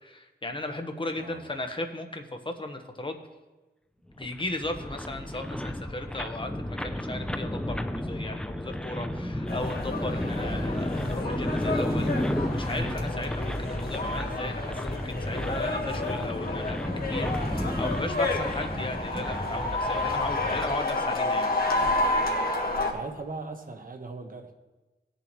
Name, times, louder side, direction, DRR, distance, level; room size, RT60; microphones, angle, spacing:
voice 1, 0.0-3.1 4.2-12.1 12.5-21.6, left 2 dB, 30° left, 4 dB, 1.1 m, -36 dB
voice 2, 1.2-1.5 4.2-4.3 13.6-13.8 18.7-19.0 22.8-24.5, right 3 dB, 50° right, 4 dB, 1.2 m, -40 dB
sound 1, 4.2-20.8, left 1 dB, 5° left, 0.5 m, -32 dB
sound 2, 9.5-22.9, left 2 dB, 60° left, 1.5 m, -30 dB
18.0 x 6.9 x 3.1 m, 1.1 s
wide cardioid pair, 85°, 18 cm